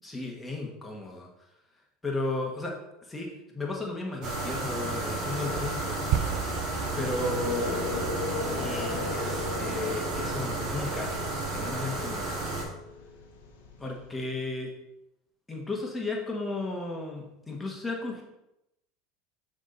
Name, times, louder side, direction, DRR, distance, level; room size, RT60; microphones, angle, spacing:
voice 1, 0.0-1.3 2.0-2.7 3.1-3.3 3.5-6.0 6.9-7.8 8.5-11.1 11.5-12.6 13.8-14.7 15.5-18.2, left 2 dB, 15° left, -1 dB, 1.7 m, -34 dB
sound 1, 4.2-12.6, right 2 dB, 50° right, 2.0 m, -32 dB
sound 2, 6.1-10.5, right 12 dB, 65° right, 0.4 m, -35 dB
sound 3, 6.3-14.3, left 4 dB, 85° left, 1.6 m, -37 dB
11.0 x 3.7 x 4.1 m, 0.87 s
hypercardioid pair, 90°, 0 cm